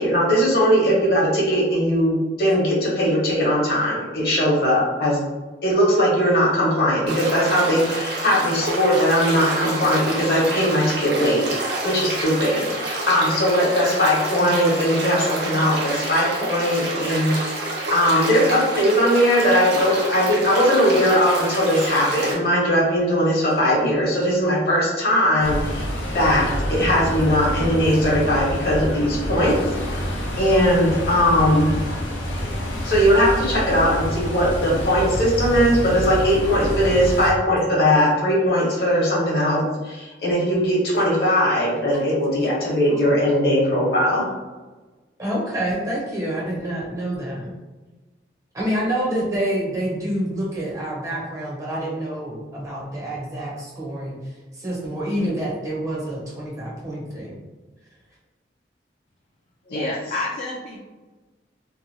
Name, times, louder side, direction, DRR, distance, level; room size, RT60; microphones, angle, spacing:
voice 1, 0.0-5.2 5.6-17.6 17.9-29.8 30.4-31.7 32.8-44.3 59.7-59.8, equal, 55° left, -5 dB, 0.9 m, -19 dB
sound 1, 7.1-22.3, right 2 dB, 60° right, 0.6 m, -28 dB
sound 2, 25.4-37.3, equal, 90° left, 0.5 m, -27 dB
voice 2, 42.4-43.0 45.2-47.5 48.5-54.2 54.5-57.4, right 1 dB, 20° right, -5 dB, 0.6 m, -27 dB
voice 3, 59.7-60.9, left 2 dB, 40° left, -3 dB, 0.3 m, -29 dB
2.8 x 2.2 x 2.6 m, 1.2 s
head